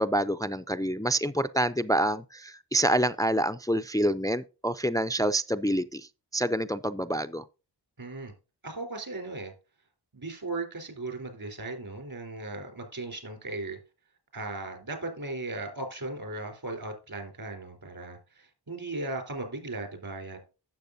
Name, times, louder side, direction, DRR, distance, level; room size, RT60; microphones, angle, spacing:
voice 1, 0.0-6.1 6.3-7.4, right 1 dB, 10° left, 0.4 m, -27 dB
voice 2, 8.0-8.3 8.6-9.5 10.1-13.8 14.3-20.4, right 2 dB, 55° right, 3.6 m, -37 dB
12.0 x 7.8 x 2.6 m
wide cardioid pair, 65°, 42 cm